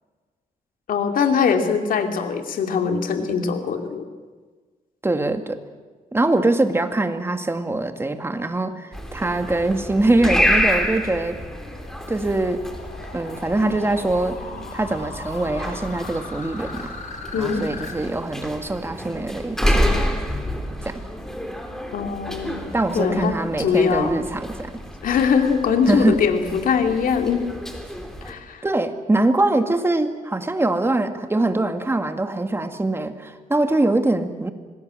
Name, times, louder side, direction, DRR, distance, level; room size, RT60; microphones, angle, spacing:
voice 1, 0.9-4.1 17.3-17.6 21.9-24.1 25.0-27.4 28.2-28.7, left 6 dB, 80° left, 5 dB, 2.6 m, -22 dB
voice 2, 5.0-5.6 6.1-11.4 12.1-12.7 13.1-14.4 14.7-16.9 17.3-19.8 20.8-21.0 22.7-24.7 25.9-26.2 28.6-34.5, right 2 dB, 15° right, 7 dB, 2.0 m, -23 dB
sound 1, 8.9-28.3, equal, 5° left, 3.2 m, -28 dB
sound 2, 11.3-17.9, left 4 dB, 65° left, 4.6 m, -40 dB
26.0 x 19.5 x 7.7 m, 1.4 s
cardioid pair, 105°, 14 cm